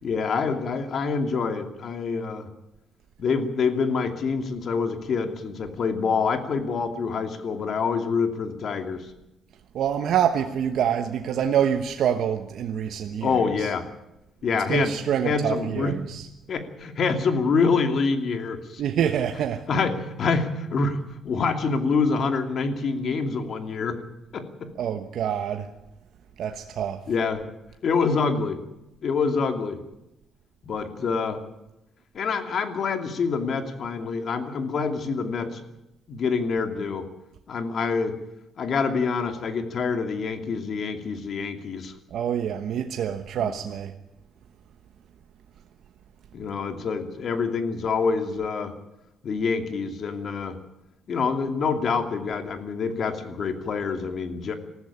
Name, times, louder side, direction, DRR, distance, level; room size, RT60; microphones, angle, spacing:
voice 1, 0.0-2.5 3.2-9.1 13.2-13.9 14.4-14.9 15.2-16.0 16.5-18.8 19.7-21.0 21.2-24.0 24.3-24.7 27.1-27.5 27.8-28.6 29.0-29.8 30.6-31.4 32.1-35.7 36.1-37.1 37.5-38.2 38.6-41.9 43.4-43.5 46.3-48.7 49.2-50.6 51.1-54.5, left 5 dB, 55° left, 2.6 m, -26 dB
voice 2, 9.7-13.7 14.5-16.3 18.8-19.8 24.8-25.7 26.4-27.0 42.1-43.9, right 9 dB, 70° right, 1.2 m, -26 dB
20.0 x 14.5 x 9.9 m
cardioid pair, 90°, 0 cm